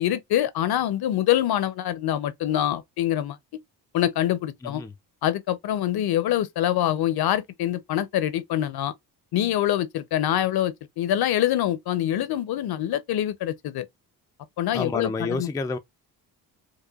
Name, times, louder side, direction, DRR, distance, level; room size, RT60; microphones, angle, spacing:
voice 1, 0.0-3.4 3.9-4.8 5.2-8.9 9.3-13.9 14.6-15.5, left 12 dB, 65° left, 0.7 m, -25 dB
voice 2, 4.6-4.9 14.7-15.8, left 3 dB, 10° left, 0.3 m, -29 dB
4.8 x 2.2 x 2.3 m
cardioid pair, 90°, 41 cm